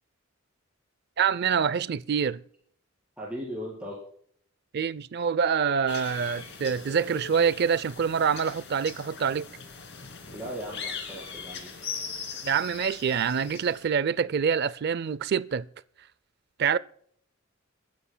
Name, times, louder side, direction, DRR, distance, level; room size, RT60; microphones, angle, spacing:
voice 1, 1.2-2.4 4.7-9.5 12.4-15.7 16.6-16.8, right 7 dB, 50° right, 0.4 m, -26 dB
voice 2, 3.2-3.9 10.3-11.7, equal, 5° right, 4.3 m, -37 dB
sound 1, 5.9-13.9, left 5 dB, 55° left, 2.7 m, -40 dB
29.5 x 10.5 x 2.2 m
head